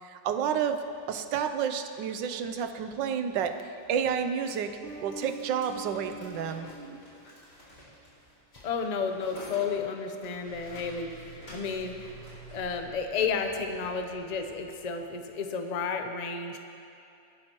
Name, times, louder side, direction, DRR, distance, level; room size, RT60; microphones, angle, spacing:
voice 1, 0.0-3.5 3.9-4.7 5.0-7.0, right 7 dB, 80° right, 8 dB, 1.4 m, -30 dB
sound 1, 3.4-12.8, left 1 dB, 65° left, 4.6 m, -51 dB
Bass guitar, 4.8-7.8, right 2 dB, 40° right, 1.7 m, -45 dB
voice 2, 8.6-11.3 11.5-11.9 12.5-16.6, left 5 dB, 45° left, 5 dB, 0.5 m, -32 dB
sound 2, 10.4-15.4, right 3 dB, 25° right, 1.7 m, -50 dB
22.0 x 12.0 x 3.0 m, 2.6 s
omnidirectional pair, 1.9 m